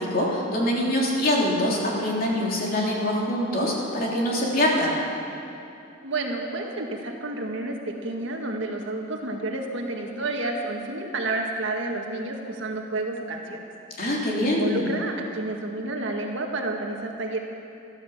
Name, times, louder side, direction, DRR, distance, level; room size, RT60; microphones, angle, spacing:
voice 1, 0.0-4.9 14.0-14.9, left 1 dB, 45° left, -3 dB, 3.3 m, -24 dB
voice 2, 6.0-13.6 14.5-17.4, right 2 dB, 65° right, 1 dB, 1.8 m, -30 dB
15.0 x 13.5 x 7.3 m, 2.7 s
head